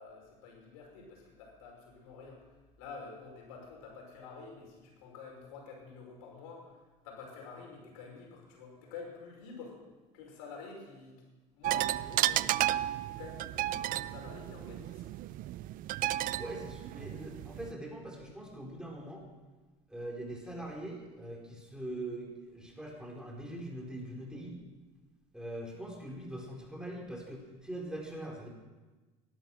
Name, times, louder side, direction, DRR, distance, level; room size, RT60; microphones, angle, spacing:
voice 1, 0.0-2.4 2.8-6.8 7.0-9.8 10.1-11.3 11.5-12.8 13.1-15.1, left 4 dB, 85° left, 0 dB, 5.4 m, -48 dB
sound 1, 11.6-17.7, right 14 dB, 55° right, 0.5 m, -33 dB
voice 2, 16.4-19.2 19.9-24.6 25.3-28.5, right 1 dB, 5° right, -1 dB, 4.3 m, -42 dB
17.5 x 12.0 x 6.4 m, 1.2 s
supercardioid pair, 105°, 17 cm